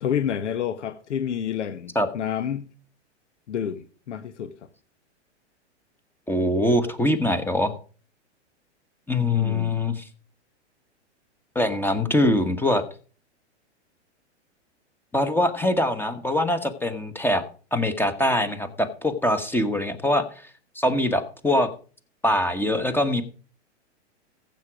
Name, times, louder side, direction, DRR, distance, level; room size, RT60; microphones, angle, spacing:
voice 1, 0.0-2.7 3.5-4.5 9.3-9.8, left 9 dB, 80° left, 1.2 m, -29 dB
voice 2, 6.3-7.7 9.1-10.0 11.5-12.8 15.1-17.4 17.7-20.3 20.7-21.7 22.2-23.2, left 1 dB, 5° left, 1.2 m, -23 dB
15.0 x 7.5 x 5.0 m
hypercardioid pair, 130°, 35 cm